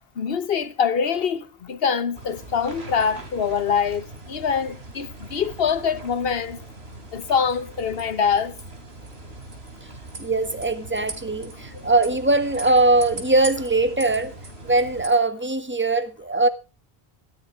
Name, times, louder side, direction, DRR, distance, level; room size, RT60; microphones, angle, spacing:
voice 1, 0.2-6.6 7.1-8.5, left 6 dB, 65° left, 1.2 m, -24 dB
sound 1, 2.1-15.1, right 2 dB, 75° right, 3.3 m, -40 dB
voice 2, 10.2-14.3 14.6-16.5, right 2 dB, 10° right, 1.5 m, -21 dB
14.5 x 12.5 x 3.2 m
omnidirectional pair, 1.1 m